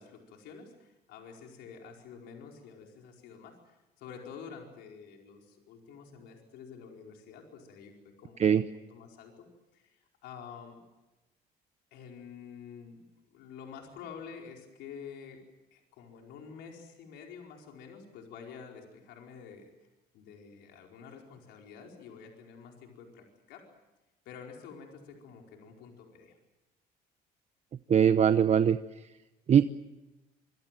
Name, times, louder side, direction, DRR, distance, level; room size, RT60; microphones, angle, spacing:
voice 1, 0.0-9.5 9.7-10.8 11.9-13.0 13.3-15.5 15.7-19.9 20.1-23.7 24.2-26.4, left 6 dB, 85° left, 1 dB, 4.7 m, -49 dB
voice 2, 27.9-28.8 29.5-29.6, right 8 dB, 40° right, 11 dB, 0.9 m, -21 dB
26.0 x 25.0 x 7.6 m, 1.1 s
cardioid pair, 110°, 17 cm